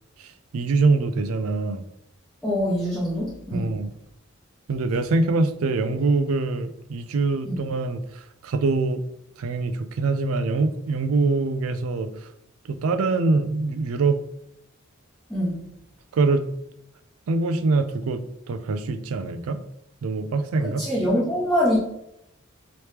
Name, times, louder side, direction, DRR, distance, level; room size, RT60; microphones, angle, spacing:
voice 1, 0.5-1.8 3.5-3.9 4.7-8.0 8.4-9.0 9.4-12.1 12.7-14.2 16.1-16.4 17.3-18.2 18.5-19.6 20.0-20.8, right 3 dB, 80° right, 11 dB, 0.4 m, -23 dB
voice 2, 2.4-3.8 7.4-7.6 15.3-15.6 20.6-21.8, equal, 5° left, -10 dB, 0.8 m, -24 dB
3.1 x 2.9 x 3.2 m, 0.81 s
head